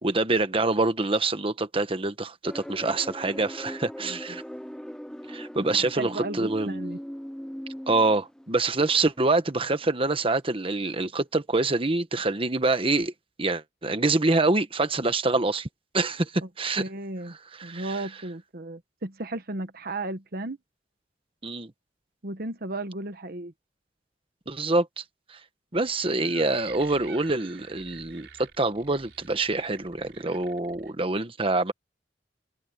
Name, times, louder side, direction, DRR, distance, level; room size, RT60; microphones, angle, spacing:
voice 1, 0.0-4.4 5.3-6.7 7.9-13.1 13.4-15.7 15.9-16.8 17.6-17.9 21.4-21.7 24.5-25.0 25.7-31.7, right 2 dB, 30° right, 1.2 m, -26 dB
sound 1, 2.4-10.3 10.6-10.9, equal, 5° left, 0.6 m, -40 dB
voice 2, 4.0-4.4 5.7-7.0 16.8-17.4 17.6-20.6 22.2-23.5, right 2 dB, 55° right, 1.1 m, -35 dB
sound 2, 25.7-30.9, right 6 dB, 75° right, 3.9 m, -48 dB
head